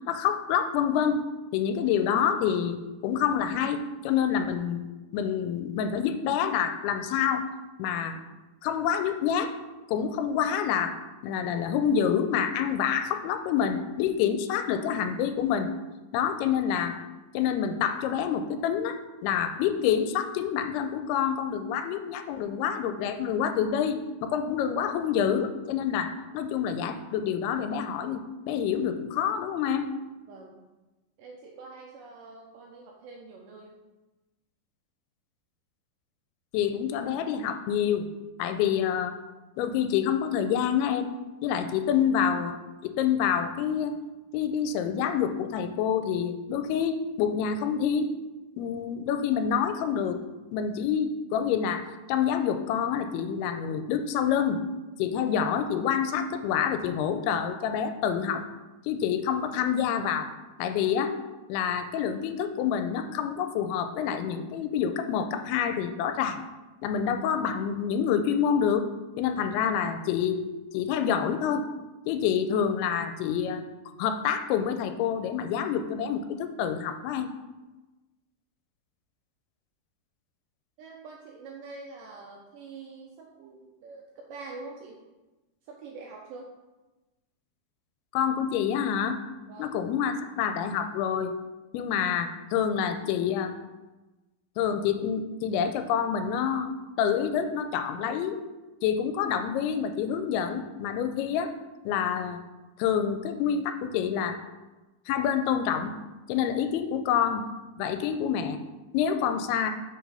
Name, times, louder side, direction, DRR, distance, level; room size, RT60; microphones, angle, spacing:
voice 1, 0.1-1.2 1.5-4.8 5.1-7.4 7.8-8.2 8.6-9.5 9.9-11.0 11.2-15.7 16.1-17.0 17.3-19.0 19.2-29.9 36.5-38.1 38.4-39.1 39.6-41.1 41.4-43.9 44.3-48.1 48.6-50.2 50.5-54.6 55.0-58.4 58.8-60.3 60.6-61.2 61.5-66.4 66.8-68.9 69.2-70.4 70.7-71.7 72.1-73.6 74.0-77.3 88.1-89.2 89.6-91.4 91.7-93.6 94.6-98.4 98.8-101.5 101.9-102.4 102.8-104.4 105.1-105.9 106.3-107.5 107.8-108.6 108.9-109.7, left 8 dB, 85° left, 8 dB, 2.5 m, -27 dB
voice 2, 30.3-30.6 31.2-33.8 80.8-85.0 85.7-86.5 89.5-89.7, right 3 dB, 90° right, -1 dB, 1.9 m, -45 dB
5.5 x 4.7 x 5.5 m, 1.1 s
omnidirectional pair, 4.5 m